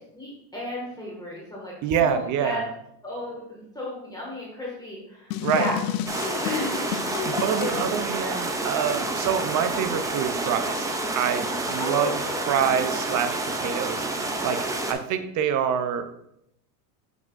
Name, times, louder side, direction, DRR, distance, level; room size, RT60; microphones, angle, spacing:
voice 1, 0.1-2.6 3.0-5.8 6.3-6.8 11.8-12.8, left 2 dB, 10° left, -5 dB, 1.9 m, -34 dB
voice 2, 1.8-2.7 5.4-5.7 7.2-10.9 11.1-12.2 12.5-16.1, right 8 dB, 40° right, 10 dB, 0.7 m, -26 dB
sound 1, 5.3-7.9, left 10 dB, 65° left, 0.8 m, -31 dB
sound 2, 6.1-14.9, right 2 dB, 10° right, 0.3 m, -29 dB
7.2 x 6.2 x 2.6 m, 0.77 s
supercardioid pair, 110°, 50 cm